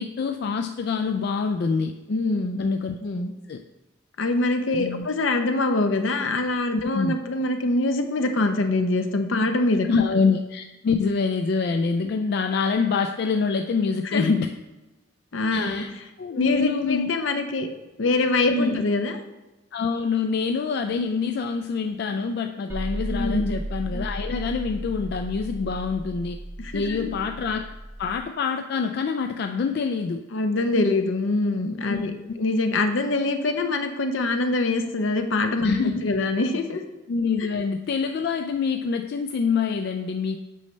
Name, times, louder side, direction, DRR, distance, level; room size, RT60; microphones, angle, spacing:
voice 1, 0.0-1.9 2.6-3.0 3.5-3.6 4.7-5.1 6.9-7.1 9.9-14.5 15.5-15.9 16.2-17.1 18.5-18.8 19.7-26.4 26.7-27.7 28.0-30.2 31.8-32.1 35.6-36.1 37.1-40.4, left 5 dB, 55° left, 6 dB, 0.3 m, -25 dB
voice 2, 2.1-2.7 3.0-3.3 4.2-9.9 14.1-14.3 15.3-15.8 16.3-17.7 18.0-19.2 23.1-23.6 26.6-27.1 30.3-36.8, left 2 dB, 75° left, 6 dB, 0.7 m, -24 dB
sound 1, 22.7-28.2, right 1 dB, 15° right, 0.4 m, -34 dB
8.3 x 5.2 x 3.2 m, 1.1 s
head